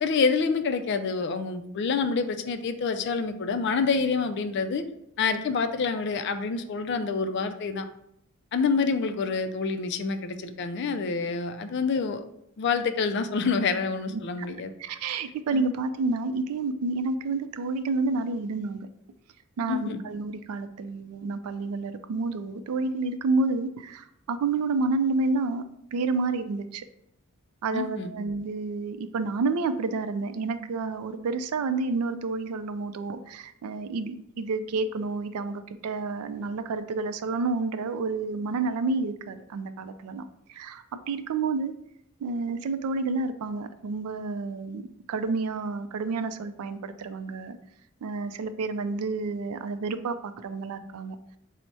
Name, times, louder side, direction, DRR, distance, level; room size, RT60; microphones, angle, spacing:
voice 1, 0.0-4.8 5.2-7.9 8.5-12.2 12.6-14.7 15.5-15.7 19.7-20.0 27.7-28.1, left 5 dB, 50° left, 8 dB, 0.3 m, -27 dB
voice 2, 14.1-14.5 14.8-18.9 19.6-25.6 25.9-26.8 27.6-41.7 42.2-44.8 45.1-47.6 48.0-51.2, right 3 dB, 85° right, 10 dB, 0.4 m, -29 dB
4.6 x 2.1 x 4.0 m, 0.76 s
head